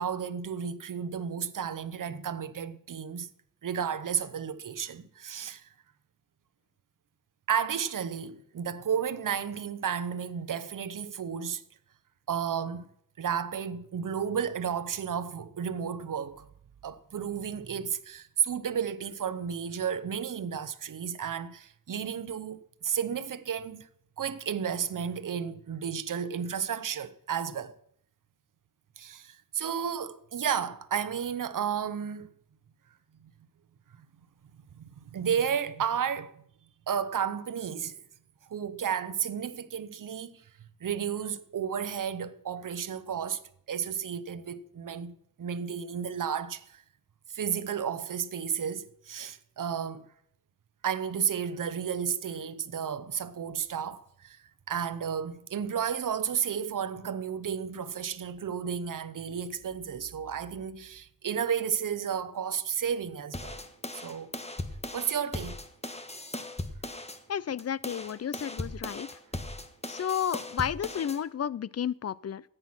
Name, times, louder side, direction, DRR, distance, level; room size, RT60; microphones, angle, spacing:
voice 1, 0.0-3.3 3.6-5.6 7.5-11.6 12.3-12.9 13.2-16.5 16.8-23.9 24.2-27.7 29.0-32.3 34.7-36.3 36.9-38.0 38.5-40.4 40.8-43.4 43.7-46.8 47.3-50.1 50.8-54.4 54.7-63.6 63.9-64.3 64.9-65.6, right 7 dB, 65° right, 0.9 m, -32 dB
sound 1, 63.3-67.2 67.6-71.2, left 2 dB, 20° left, 1.3 m, -38 dB
voice 2, 67.3-69.1 69.9-72.4, left 9 dB, 45° left, 0.5 m, -32 dB
13.5 x 9.0 x 6.0 m
wide cardioid pair, 80°, 34 cm